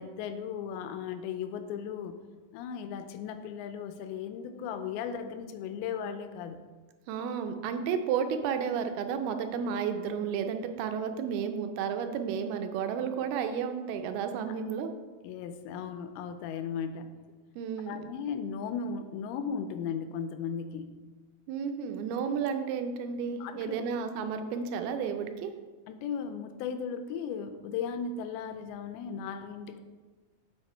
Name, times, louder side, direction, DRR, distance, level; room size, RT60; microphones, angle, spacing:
voice 1, 0.0-2.2 2.5-6.6 15.2-17.2 17.9-21.0 23.4-23.8 25.9-29.8, left 7 dB, 85° left, 9 dB, 2.4 m, -36 dB
voice 2, 7.1-14.9 17.6-18.1 21.5-25.5, right 7 dB, 85° right, 7 dB, 2.6 m, -32 dB
7.7 x 4.8 x 4.4 m, 1.3 s
omnidirectional pair, 4.4 m